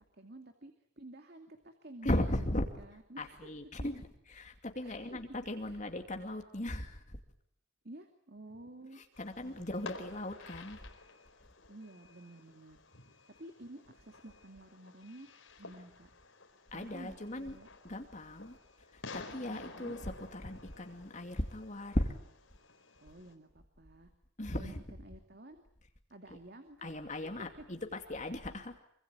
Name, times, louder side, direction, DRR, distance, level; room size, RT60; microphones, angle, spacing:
voice 1, 0.2-3.5 4.8-5.2 5.6-5.8 7.8-9.0 9.4-9.9 11.7-12.8 13.4-15.3 15.6-16.1 16.7-17.7 19.5-19.9 23.0-24.1 24.5-25.6 26.1-27.0 27.4-27.5, right 1 dB, 50° right, 6 dB, 2.5 m, -52 dB
voice 2, 2.0-2.6 3.2-4.0 4.3-7.2 9.0-10.8 16.7-17.6 17.8-18.6 18.9-22.1 24.4-24.8 26.8-28.7, left 1 dB, 40° left, 4 dB, 2.5 m, -37 dB
Fireworks, 9.1-23.3, left 3 dB, 80° left, 4.6 m, -52 dB
26.0 x 25.0 x 8.9 m, 0.69 s
head